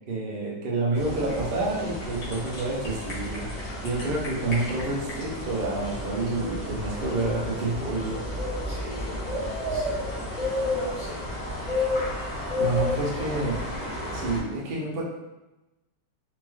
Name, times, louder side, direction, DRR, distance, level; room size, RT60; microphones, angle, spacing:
voice 1, 0.1-8.2 8.7-8.8 12.6-13.6 14.1-15.0, right 2 dB, 60° right, -2 dB, 0.5 m, -29 dB
sound 1, 0.9-14.4, left 1 dB, 35° left, 0.7 m, -32 dB
sound 2, 1.3-7.3, left 1 dB, 70° left, 1.7 m, -43 dB
voice 2, 8.6-10.1 10.4-11.2, left 1 dB, 50° left, -9 dB, 1.3 m, -42 dB
4.2 x 2.3 x 3.0 m, 1.0 s
omnidirectional pair, 1.9 m